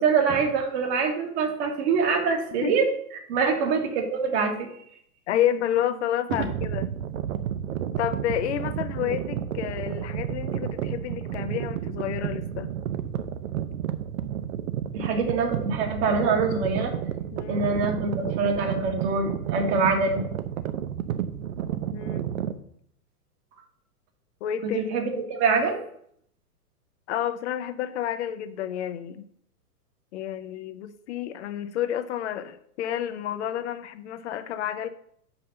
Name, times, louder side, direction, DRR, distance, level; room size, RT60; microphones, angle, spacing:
voice 1, 0.0-2.9 3.3-4.7 9.0-9.1 14.9-16.9 17.5-20.2 24.6-25.8, right 4 dB, 45° right, 3 dB, 1.9 m, -24 dB
voice 2, 5.3-6.9 8.0-12.7 17.3-17.6 21.9-22.3 24.4-24.9 27.1-29.2 30.1-34.9, left 11 dB, 50° left, 10 dB, 0.6 m, -30 dB
sound 1, 6.5-22.5, right 10 dB, 60° right, 0.8 m, -31 dB
5.6 x 5.4 x 6.7 m, 0.67 s
hypercardioid pair, 125°, 46 cm